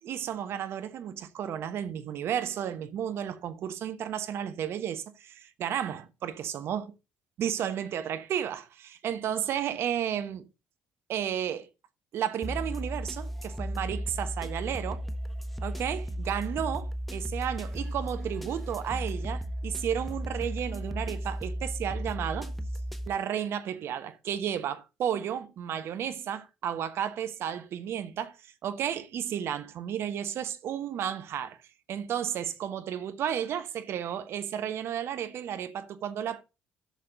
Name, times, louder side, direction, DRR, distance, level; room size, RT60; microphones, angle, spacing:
voice 1, 0.0-6.9 7.4-10.4 11.1-11.7 12.1-15.0 15.6-22.5 23.1-28.4 28.6-31.6 31.9-36.4, right 9 dB, 60° right, 1.1 m, -33 dB
sound 1, 12.4-23.1, equal, ahead, 1.2 m, -35 dB
12.5 x 6.5 x 3.8 m
hypercardioid pair, 50°, 5 cm